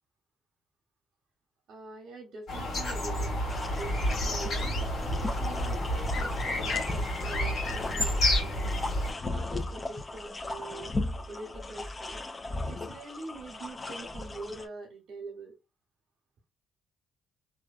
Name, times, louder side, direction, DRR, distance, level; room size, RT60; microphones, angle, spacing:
voice 1, 1.7-3.3 3.8-4.0 4.2-8.5 9.2-10.9 11.3-12.1 12.7-15.5, right 3 dB, 70° right, 1 dB, 0.7 m, -44 dB
sound 1, 2.5-9.1, left 1 dB, 65° left, 1.2 m, -30 dB
sound 2, 3.5-14.7, left 2 dB, 25° left, 0.3 m, -37 dB
2.5 x 2.1 x 2.4 m, 0.25 s
cardioid pair, 90°, 0 cm